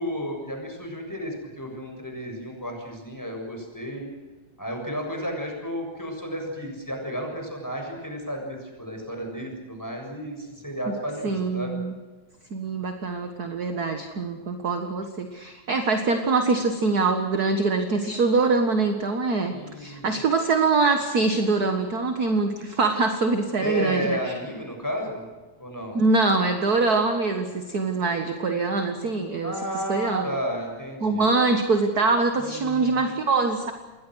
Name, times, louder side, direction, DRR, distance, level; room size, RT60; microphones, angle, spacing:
voice 1, 0.0-4.1 4.6-11.8 19.5-20.3 23.6-25.2 25.6-26.0 29.4-31.3 32.4-33.2, equal, 5° left, 1 dB, 6.9 m, -32 dB
voice 2, 11.2-12.0 12.5-24.4 25.9-29.6 29.9-30.3 31.0-33.7, right 3 dB, 40° right, 6 dB, 1.7 m, -24 dB
28.5 x 22.0 x 6.4 m, 1.3 s
omnidirectional pair, 3.3 m